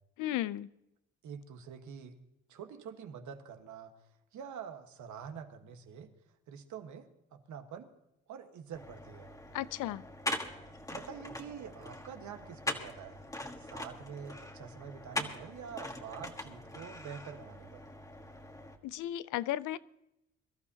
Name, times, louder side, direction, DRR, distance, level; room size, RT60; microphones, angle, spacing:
voice 1, 0.2-0.7 9.5-10.0 18.8-19.8, left 14 dB, 85° left, 18 dB, 0.5 m, -34 dB
voice 2, 1.2-2.2 2.5-6.1 6.5-7.9 8.3-9.3 10.9-13.2 13.6-17.8, right 7 dB, 75° right, 6 dB, 1.5 m, -46 dB
sound 1, 8.7-18.8, left 1 dB, 10° left, 1.5 m, -42 dB
23.0 x 12.5 x 2.8 m, 0.87 s
cardioid pair, 90°, 30 cm